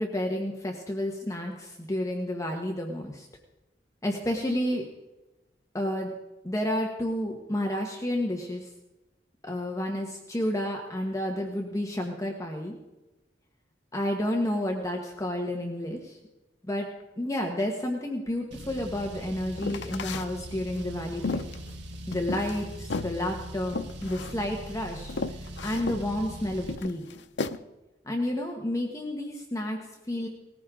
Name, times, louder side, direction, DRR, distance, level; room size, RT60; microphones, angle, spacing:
voice 1, 0.0-3.3 4.0-4.9 5.7-6.1 6.4-8.7 9.5-12.7 13.9-16.2 16.6-16.9 17.2-21.4 22.1-27.1 28.0-30.3, left 1 dB, 20° left, 1 dB, 1.4 m, -31 dB
Car, 18.5-26.8, right 1 dB, 85° right, 1.4 m, -41 dB
sound 1, 19.6-20.3 20.8-22.6 22.9-23.2 23.7-24.4 24.7-24.8 25.1-26.0 26.7-27.6, left 3 dB, 90° left, 0.7 m, -34 dB
19.5 x 15.0 x 3.8 m, 1.0 s
head